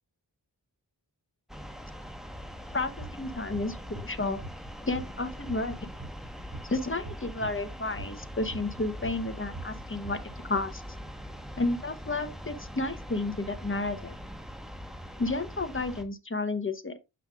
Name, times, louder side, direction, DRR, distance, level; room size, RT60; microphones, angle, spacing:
sound 1, 1.5-16.0, equal, ahead, 1.2 m, -42 dB
voice 1, 2.7-4.4 4.9-5.9 6.6-10.2 10.5-10.8 11.6-14.1 15.2-17.0, left 2 dB, 30° left, 1.0 m, -31 dB
sound 2, 3.0-4.7 4.9-8.8 9.0-10.4, right 2 dB, 40° right, 2.9 m, -42 dB
8.1 x 5.7 x 2.4 m
wide cardioid pair, 40°, 42 cm